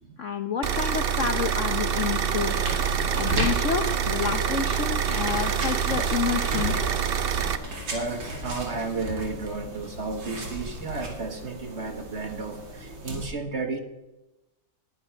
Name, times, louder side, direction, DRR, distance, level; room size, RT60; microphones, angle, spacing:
voice 1, 0.2-2.6 3.1-6.7, left 7 dB, 60° left, 7 dB, 0.8 m, -29 dB
sound 1, 0.6-7.6, right 7 dB, 70° right, 0.5 m, -26 dB
sound 2, 2.0-13.3, equal, 90° right, 3.4 m, -35 dB
voice 2, 7.9-13.8, right 3 dB, 40° right, 6 dB, 1.3 m, -33 dB
10.5 x 8.6 x 9.8 m, 1.0 s
omnidirectional pair, 2.0 m